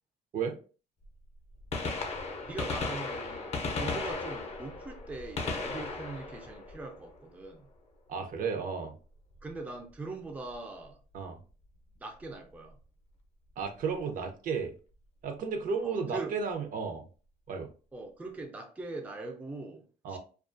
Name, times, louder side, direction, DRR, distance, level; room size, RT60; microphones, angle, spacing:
Gunshot gunfire, 1.0-1.1 1.6-7.4 9.4-9.5 10.5-10.6 12.2-12.3 13.7-13.8 14.0-14.1, left 3 dB, 40° left, 0.6 m, -36 dB
voice 1, 2.4-7.7 9.4-11.0 12.0-12.8 15.8-16.4 17.9-20.2, right 3 dB, 10° right, 0.4 m, -41 dB
voice 2, 8.1-9.0 11.1-11.4 13.6-14.7 15.2-17.1 17.5-17.7 20.0-20.2, right 5 dB, 55° right, 0.6 m, -33 dB
2.3 x 2.3 x 2.5 m
cardioid pair, 110°, 17 cm